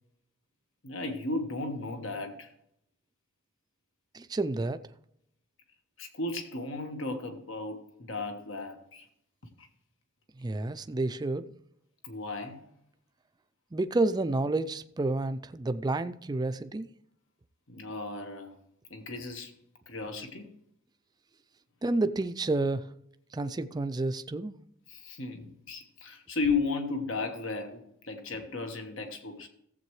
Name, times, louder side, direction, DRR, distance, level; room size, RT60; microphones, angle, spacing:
voice 1, 0.8-2.5 6.0-9.1 9.6-9.7 12.0-12.7 17.7-18.5 18.9-19.5 19.9-20.5 24.9-29.5, left 3 dB, 65° left, 1.4 m, -35 dB
voice 2, 4.1-4.8 10.4-11.5 13.7-16.9 21.8-22.8 23.3-24.5, right 2 dB, 20° right, 0.4 m, -30 dB
16.0 x 7.7 x 3.2 m
head